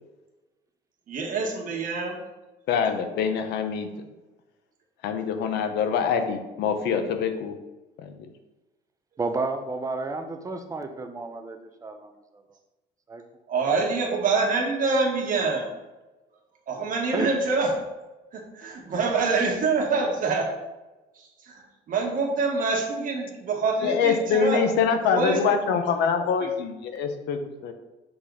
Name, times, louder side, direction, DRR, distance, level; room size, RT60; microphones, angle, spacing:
voice 1, 1.1-2.2 13.5-15.7 16.7-17.7 18.3-20.5 21.5-21.6 21.9-24.6 25.1-25.4 26.0-26.1 26.4-26.5, right 4 dB, 55° right, 0 dB, 1.7 m, -25 dB
voice 2, 2.7-3.9 5.0-7.6 8.0-8.3 23.8-27.7, left 6 dB, 80° left, 7 dB, 0.8 m, -25 dB
voice 3, 9.2-12.1 13.1-13.2 13.5-13.7 17.1-17.3, right 3 dB, 20° right, 5 dB, 0.7 m, -31 dB
6.2 x 4.0 x 4.8 m, 1.1 s
cardioid pair, 110°, 17 cm